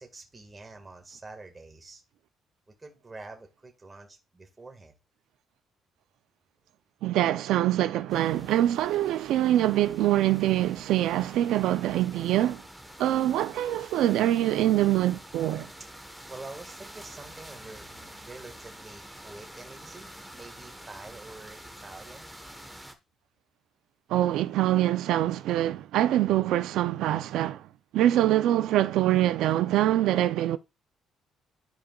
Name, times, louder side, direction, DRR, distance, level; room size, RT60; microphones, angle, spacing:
voice 1, 0.0-2.0 2.8-4.9 16.0-22.3, right 3 dB, 15° right, 1.7 m, -46 dB
voice 2, 7.0-12.6 13.0-15.7 24.1-27.7 27.9-30.6, right 13 dB, 85° right, 0.5 m, -24 dB
sound 1, 8.1-22.9, equal, ahead, 1.2 m, -47 dB
13.5 x 5.1 x 2.4 m
cardioid pair, 145°, 0 cm